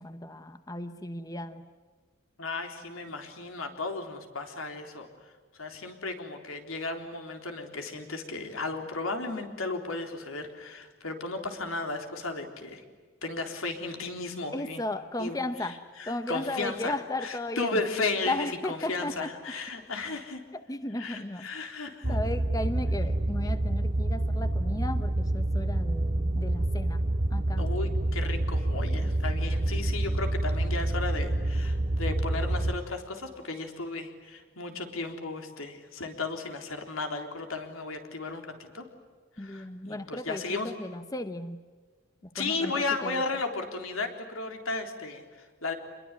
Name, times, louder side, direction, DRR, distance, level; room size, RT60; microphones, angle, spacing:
voice 1, 0.0-1.7 14.5-17.8 18.2-19.3 20.5-21.7 22.1-27.0 27.3-27.7 29.0-29.1 39.4-41.6 42.4-43.2, left 1 dB, 15° left, 10 dB, 0.8 m, -35 dB
voice 2, 2.4-5.3 5.6-12.8 13.2-14.8 15.2-16.9 17.2-20.4 21.0-22.2 27.6-38.9 39.4-40.7 42.3-45.7, left 3 dB, 85° left, 5 dB, 3.8 m, -35 dB
sound 1, 22.0-32.8, right 1 dB, 35° right, 1.0 m, -28 dB
27.5 x 22.0 x 9.7 m, 1.5 s
head